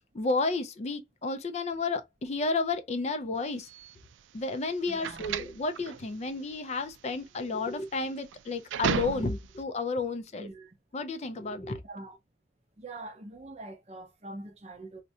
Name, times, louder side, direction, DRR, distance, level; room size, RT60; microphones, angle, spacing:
voice 1, 0.1-3.7 4.3-10.5 10.9-11.8, left 3 dB, 35° left, 0.4 m, -31 dB
sound 1, 3.6-9.6, right 8 dB, 90° right, 0.3 m, -35 dB
voice 2, 4.9-5.4 10.4-10.8 11.8-12.2 12.8-15.0, right 2 dB, 35° right, 0.5 m, -44 dB
3.6 x 2.2 x 2.7 m
head